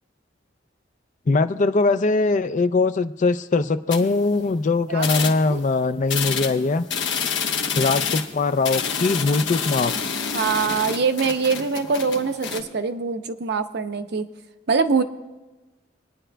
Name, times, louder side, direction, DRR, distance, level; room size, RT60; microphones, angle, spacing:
voice 1, 1.3-6.8 7.8-9.9, left 3 dB, 40° left, 10 dB, 0.4 m, -21 dB
sound 1, 3.9-4.6 5.0-5.7 6.1-12.6, left 6 dB, 75° left, 1.1 m, -28 dB
voice 2, 4.9-5.6 10.3-14.3 14.7-15.0, right 5 dB, 60° right, 8 dB, 0.7 m, -24 dB
28.0 x 9.9 x 2.3 m, 1.2 s
head